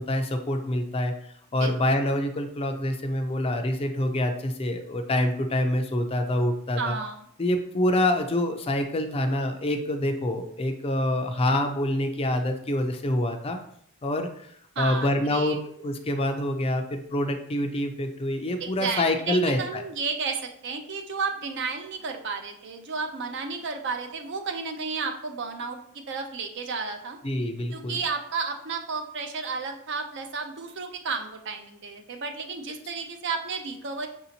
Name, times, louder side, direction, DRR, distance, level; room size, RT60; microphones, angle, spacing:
voice 1, 0.0-7.0 7.4-13.6 14.0-19.8 27.2-28.0, left 1 dB, 30° left, 6 dB, 0.4 m, -26 dB
voice 2, 6.8-7.2 14.8-15.6 18.6-27.2 27.7-34.1, right 4 dB, 60° right, 5 dB, 0.5 m, -32 dB
5.8 x 2.7 x 2.8 m, 0.67 s
head